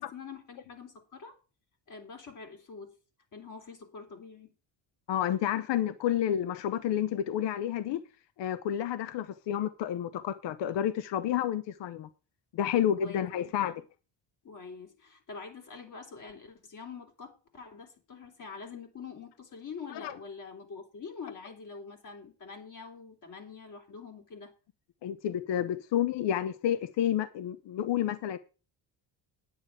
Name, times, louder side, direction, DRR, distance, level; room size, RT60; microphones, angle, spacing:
voice 1, 0.0-1.4 1.9-2.9 3.3-4.5 12.7-13.5 14.4-24.5, left 5 dB, 40° left, 3.7 m, -45 dB
voice 2, 5.1-8.0 8.4-12.1 12.5-13.7 19.9-20.1 25.0-28.4, left 10 dB, 70° left, 0.9 m, -30 dB
10.0 x 9.2 x 4.9 m
cardioid pair, 140°, 45 cm